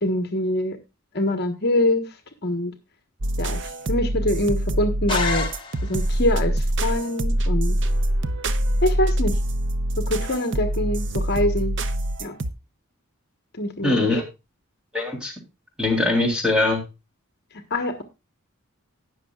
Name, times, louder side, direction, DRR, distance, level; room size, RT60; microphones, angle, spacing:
voice 1, 0.0-0.8 1.1-2.1 2.4-2.7 3.4-3.6 3.9-5.5 5.8-7.7 8.8-9.4 10.0-11.7 12.2-12.4 13.6-14.1 17.7-18.0, left 1 dB, 50° left, 6 dB, 1.4 m, -24 dB
sound 1, 3.2-12.5, right 1 dB, 60° right, 0.8 m, -24 dB
sound 2, 5.1-6.2, left 4 dB, 25° left, 1.7 m, -28 dB
voice 2, 13.8-14.2 14.9-15.3 15.8-16.8, left 2 dB, 5° right, 1 dB, 3.4 m, -21 dB
19.5 x 6.5 x 2.4 m, 0.26 s
head